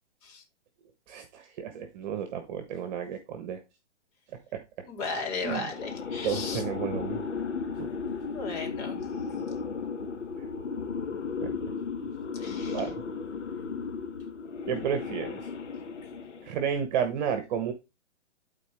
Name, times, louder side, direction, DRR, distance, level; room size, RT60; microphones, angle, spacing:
voice 1, 1.1-3.6 4.5-4.6 5.4-5.7 6.2-7.2 7.8-7.9 10.4-10.5 11.4-11.5 12.7-13.0 14.7-15.5 16.4-17.7, right 8 dB, 40° right, 1.3 m, -32 dB
voice 2, 4.9-6.6 8.3-9.0 12.3-12.9, left 4 dB, 35° left, 3.6 m, -35 dB
sound 1, 5.5-16.6, left 5 dB, 75° left, 1.7 m, -35 dB
12.5 x 4.3 x 3.4 m
hypercardioid pair, 140°, 36 cm